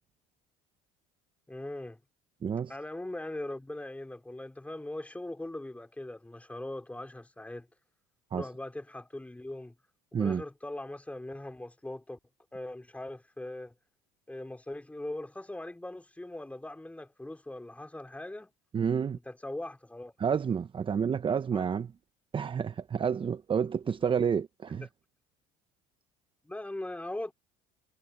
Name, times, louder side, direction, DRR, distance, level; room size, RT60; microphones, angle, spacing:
voice 1, 1.5-2.0 2.7-7.7 8.3-9.7 10.2-12.2 12.5-13.7 14.3-18.5 19.2-20.1 21.5-21.6 24.0-24.1 24.8-24.9 26.4-27.3, left 1 dB, 10° left, 4.6 m, -40 dB
voice 2, 18.7-19.2 20.2-21.9 22.3-24.9, right 7 dB, 30° right, 1.0 m, -29 dB
supercardioid pair, 90°, 17 cm